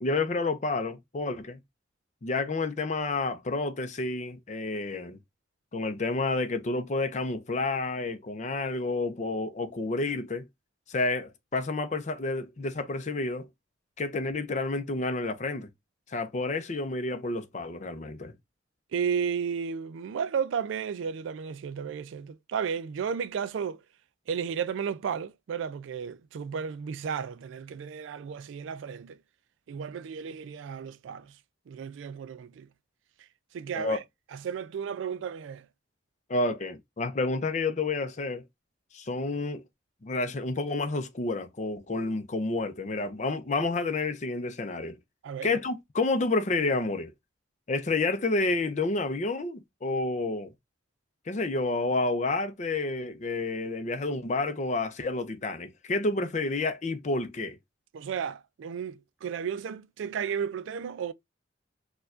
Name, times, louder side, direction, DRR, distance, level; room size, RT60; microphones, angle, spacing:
voice 1, 0.0-1.6 2.2-5.2 5.7-10.5 10.9-13.5 14.0-15.7 16.1-18.3 33.7-34.0 36.3-38.4 38.9-39.6 40.0-45.0 45.4-47.1 47.7-50.5 51.3-57.6, left 3 dB, 40° left, 0.5 m, -30 dB
voice 2, 18.9-23.8 24.3-29.2 29.7-31.3 31.7-32.7 33.5-34.0 34.3-35.7 45.2-45.5 57.9-61.1, right 7 dB, 80° right, 0.3 m, -33 dB
4.4 x 2.2 x 2.4 m
head